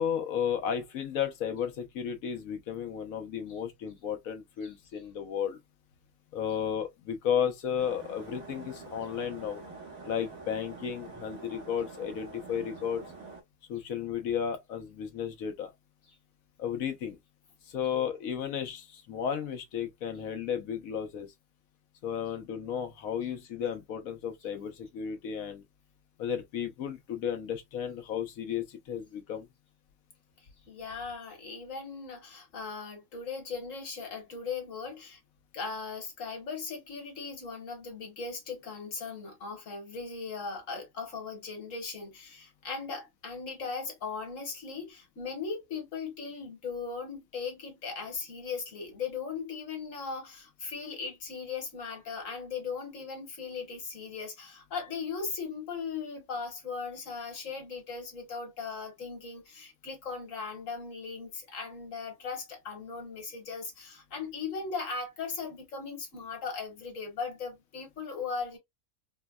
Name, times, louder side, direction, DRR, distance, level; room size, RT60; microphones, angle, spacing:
voice 1, 0.0-5.6 6.3-9.6 10.0-13.0 13.7-15.7 16.6-17.2 17.6-21.3 22.0-25.6 26.2-29.5, left 8 dB, 85° left, 1.2 m, -33 dB
sound 1, 7.8-13.4, right 3 dB, 90° right, 1.5 m, -46 dB
voice 2, 30.7-35.2 35.5-68.6, left 5 dB, 70° left, 1.7 m, -38 dB
4.4 x 2.1 x 2.2 m
omnidirectional pair, 1.4 m